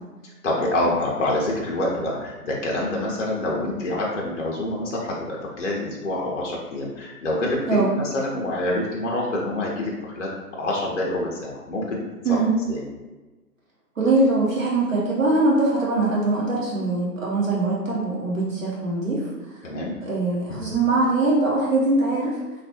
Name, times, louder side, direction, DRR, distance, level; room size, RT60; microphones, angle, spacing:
voice 1, 0.2-12.0 12.2-12.4 12.7-12.8 19.6-19.9, left 1 dB, 50° left, -3 dB, 0.5 m, -26 dB
voice 2, 14.0-19.3 20.0-22.3, right 2 dB, 55° right, -5 dB, 0.8 m, -22 dB
3.2 x 2.4 x 2.7 m, 1.2 s
figure-of-eight pair, 150°, 48 cm